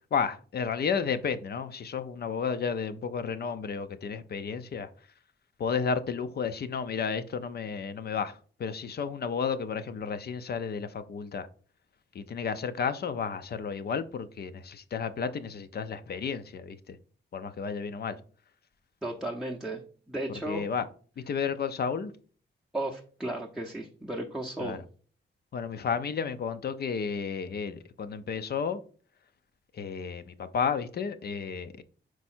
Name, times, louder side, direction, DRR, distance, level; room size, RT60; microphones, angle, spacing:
voice 1, 0.1-4.9 5.6-11.5 12.1-17.0 17.3-18.2 20.5-20.9 21.2-22.1 24.6-24.8 25.5-28.8 29.7-31.8, left 6 dB, 55° left, 0.6 m, -32 dB
voice 2, 19.0-19.8 20.1-20.6 22.7-24.8, right 1 dB, 5° right, 0.6 m, -34 dB
5.4 x 4.7 x 4.3 m
wide cardioid pair, 155°, 19 cm